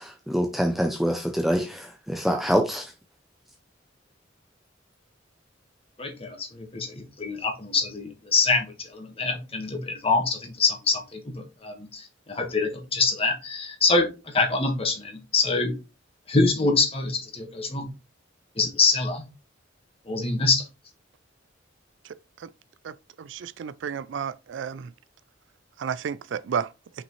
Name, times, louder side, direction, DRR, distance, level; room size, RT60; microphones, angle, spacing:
voice 1, 0.0-2.9, equal, ahead, 0.6 m, -25 dB
voice 2, 6.0-8.7 8.9-11.0 11.6-12.0 12.3-14.1 14.3-15.7 16.3-17.9 18.6-19.2 20.1-20.6, left 3 dB, 30° left, 1.6 m, -24 dB
voice 3, 23.3-24.9 25.8-26.7, right 7 dB, 65° right, 0.3 m, -31 dB
5.9 x 5.2 x 3.1 m
head